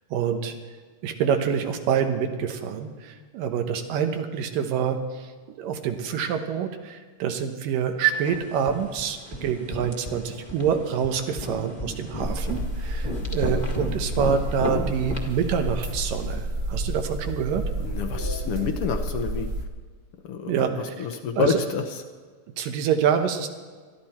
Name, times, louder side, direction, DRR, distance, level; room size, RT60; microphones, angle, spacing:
voice 1, 0.1-0.5 1.0-17.6 20.5-21.1 21.4-21.6 22.6-23.5, right 7 dB, 90° right, 6 dB, 2.8 m, -26 dB
sound 1, 8.1-16.3, left 1 dB, 20° left, 1.1 m, -35 dB
sound 2, 12.2-19.7, right 1 dB, 60° right, 0.6 m, -30 dB
voice 2, 17.8-19.5 20.2-21.8, left 6 dB, 70° left, 6 dB, 1.4 m, -28 dB
21.0 x 14.0 x 4.4 m, 1.5 s
omnidirectional pair, 3.8 m